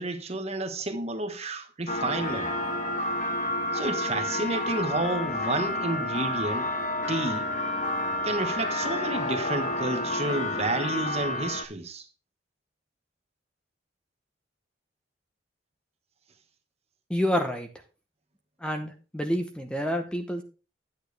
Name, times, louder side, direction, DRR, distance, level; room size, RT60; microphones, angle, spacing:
voice 1, 0.0-2.5 3.7-6.7 7.1-7.5 8.2-12.1, right 2 dB, 35° right, 1.2 m, -30 dB
sound 1, 1.9-11.6, left 1 dB, 40° left, 1.1 m, -30 dB
voice 2, 17.1-17.7 18.6-20.4, equal, 5° left, 0.8 m, -28 dB
10.0 x 8.6 x 3.3 m
head